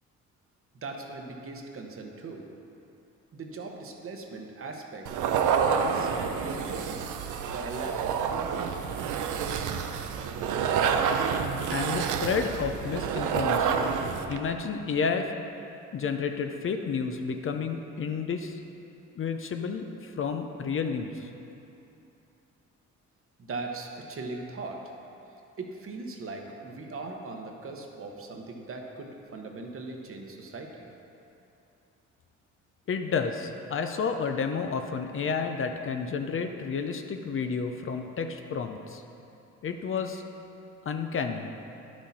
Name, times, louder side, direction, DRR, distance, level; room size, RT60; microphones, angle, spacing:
voice 1, 0.8-2.5 3.3-5.1 5.7-7.1 7.4-8.7 23.4-24.9 25.6-30.9, right 3 dB, 45° right, 2 dB, 1.1 m, -39 dB
sound 1, 5.0-14.4, right 6 dB, 80° right, 0.6 m, -28 dB
voice 2, 11.7-13.9 14.3-15.3 15.9-18.6 19.2-21.3 32.9-39.0 39.6-40.2 40.9-41.5, left 5 dB, 45° left, 6 dB, 0.6 m, -31 dB
9.8 x 6.2 x 4.1 m, 2.8 s
cardioid pair, 90°, 30 cm